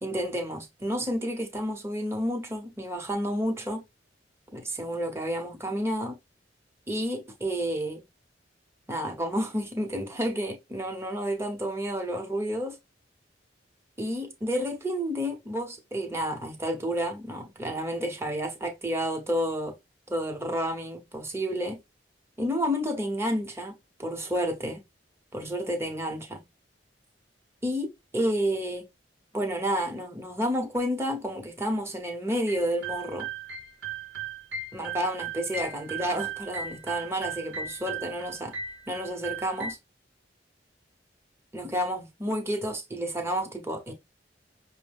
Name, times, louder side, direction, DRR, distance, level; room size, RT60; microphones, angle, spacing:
voice 1, 0.0-3.8 4.5-6.2 6.9-8.0 8.9-12.8 14.0-19.7 20.1-21.8 22.4-24.8 25.3-26.4 27.6-28.8 29.3-33.3 34.7-38.5 38.9-39.8 41.5-43.9, equal, 15° right, 0.9 m, -30 dB
sound 1, 32.5-39.7, right 5 dB, 80° right, 0.8 m, -37 dB
5.9 x 2.1 x 3.4 m
head